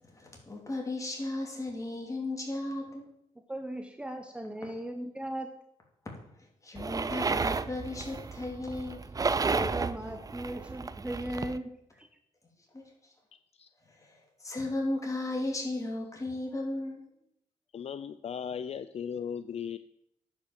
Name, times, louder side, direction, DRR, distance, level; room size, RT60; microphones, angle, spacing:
voice 1, 0.2-3.0 6.4-9.1 12.7-13.1 13.9-17.0, left 2 dB, 25° left, 0 dB, 3.1 m, -35 dB
voice 2, 3.5-5.5 9.4-12.1, right 1 dB, 10° right, 5 dB, 0.9 m, -37 dB
sound 1, 6.7-11.6, right 4 dB, 25° right, 0.5 m, -32 dB
voice 3, 13.3-13.7 17.7-19.8, left 7 dB, 55° left, 13 dB, 0.4 m, -37 dB
9.9 x 5.9 x 7.5 m, 0.76 s
cardioid pair, 105°, 13 cm